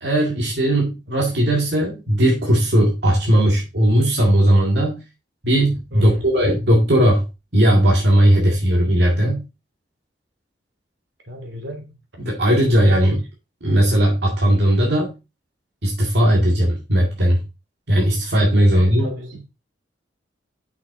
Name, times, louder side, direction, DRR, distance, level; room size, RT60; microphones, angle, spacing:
voice 1, 0.0-5.0 5.4-9.4 12.2-13.2 13.6-15.2 15.8-17.4 17.9-19.1, equal, 65° right, 2.1 m, -17 dB
voice 2, 5.9-6.3 11.3-11.9 18.7-19.4, equal, 85° right, 2.9 m, -34 dB
7.7 x 6.1 x 3.8 m
head